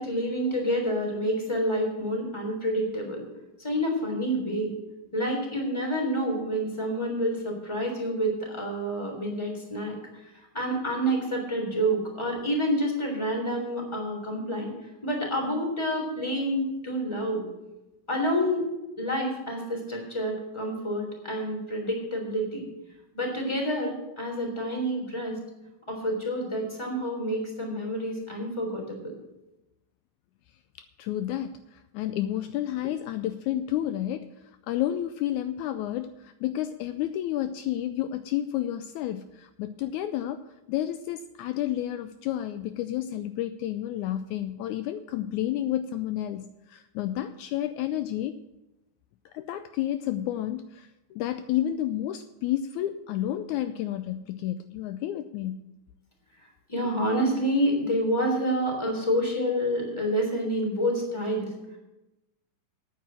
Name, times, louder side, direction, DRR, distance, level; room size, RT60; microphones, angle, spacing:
voice 1, 0.0-3.3 3.6-4.7 5.1-10.0 10.5-14.7 15.0-17.4 18.1-18.7 19.0-22.6 23.1-25.4 25.9-29.1 56.7-61.5, equal, 10° left, 1 dB, 3.0 m, -28 dB
voice 2, 30.8-48.4 49.3-55.6, left 12 dB, 85° left, 10 dB, 1.7 m, -31 dB
9.7 x 9.4 x 7.4 m, 0.96 s
omnidirectional pair, 4.0 m